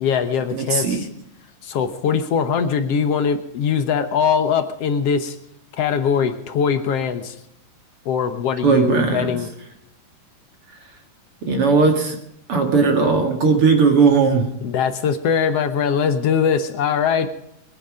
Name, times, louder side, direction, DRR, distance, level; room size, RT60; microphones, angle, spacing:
voice 1, 0.0-1.1 1.6-5.3 5.8-7.3 8.0-9.5 14.6-17.3, left 7 dB, 65° left, 9 dB, 1.5 m, -21 dB
voice 2, 0.5-1.1 8.6-9.4 11.4-12.2 12.5-14.5, right 4 dB, 45° right, 4 dB, 2.3 m, -17 dB
22.5 x 10.0 x 5.0 m, 0.76 s
omnidirectional pair, 4.1 m